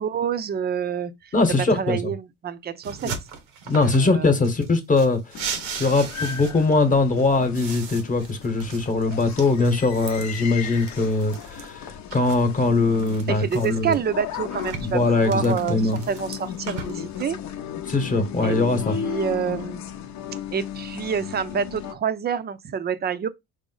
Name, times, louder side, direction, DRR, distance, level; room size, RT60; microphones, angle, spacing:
voice 1, 0.0-1.3 1.7-3.1 3.8-4.4 13.3-17.4 18.4-18.6 19.0-19.8 20.5-23.3, right 7 dB, 30° right, 0.5 m, -27 dB
voice 2, 1.3-2.1 3.0-3.1 3.7-14.0 14.9-16.0 17.9-19.0, left 3 dB, 25° left, 1.0 m, -21 dB
sound 1, 2.8-4.1 4.4-6.8 7.2-11.7 12.1-13.9 14.3-17.2, right 6 dB, 85° right, 1.0 m, -38 dB
sound 2, 5.3-21.9, left 9 dB, 60° left, 0.6 m, -35 dB
4.9 x 2.0 x 3.8 m
cardioid pair, 110°, 31 cm